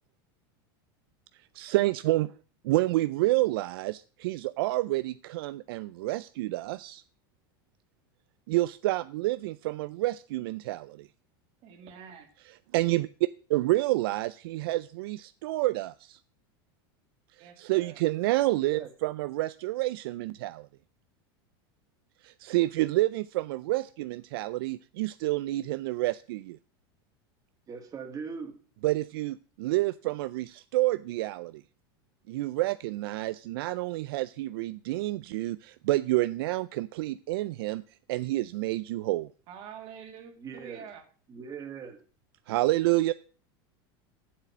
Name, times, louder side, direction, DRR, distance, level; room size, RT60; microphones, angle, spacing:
voice 1, 1.6-2.3 2.6-7.0 8.5-11.1 12.7-16.2 17.6-20.7 22.2-26.6 28.8-31.6 32.3-37.8 38.1-39.3 42.5-43.1, right 18 dB, 75° right, 0.4 m, -29 dB
voice 2, 11.6-12.3 17.4-18.0 39.5-41.0, right 8 dB, 50° right, 2.3 m, -46 dB
voice 3, 18.6-18.9 27.7-28.6 40.4-40.8 41.3-42.0, right 6 dB, 30° right, 2.0 m, -40 dB
7.6 x 6.7 x 7.2 m
supercardioid pair, 120°, 12 cm